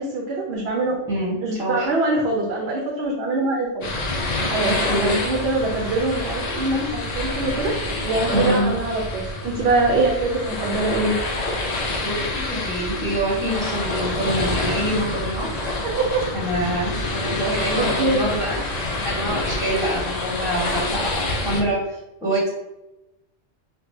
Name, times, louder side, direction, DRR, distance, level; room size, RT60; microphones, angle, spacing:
voice 1, 0.0-1.0 1.4-3.9 4.5-7.7 8.0-11.2 15.8-16.3 17.8-18.2, right 2 dB, 65° right, -1 dB, 0.8 m, -23 dB
voice 2, 1.1-1.9 4.6-5.1 8.3-8.7 12.0-15.5 16.3-18.6 19.0-22.5, right 1 dB, 5° right, -5 dB, 0.9 m, -25 dB
sound 1, 3.8-21.6, left 2 dB, 55° left, 0.5 m, -27 dB
4.6 x 2.2 x 2.6 m, 0.96 s
omnidirectional pair, 1.2 m